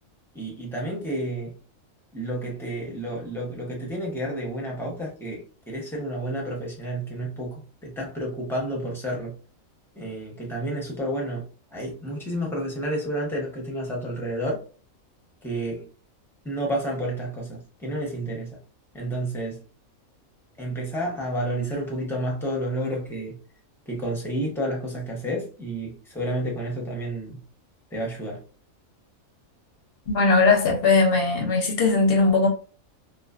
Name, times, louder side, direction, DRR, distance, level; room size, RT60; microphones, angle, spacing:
voice 1, 0.3-1.5 2.1-9.4 10.0-11.5 11.7-14.6 15.4-15.9 16.4-18.6 18.9-19.6 20.6-23.4 23.9-27.4 27.9-28.4, right 1 dB, 5° left, 0.5 m, -30 dB
voice 2, 30.1-32.5, left 3 dB, 60° left, 0.6 m, -19 dB
2.4 x 2.2 x 2.3 m
omnidirectional pair, 1.4 m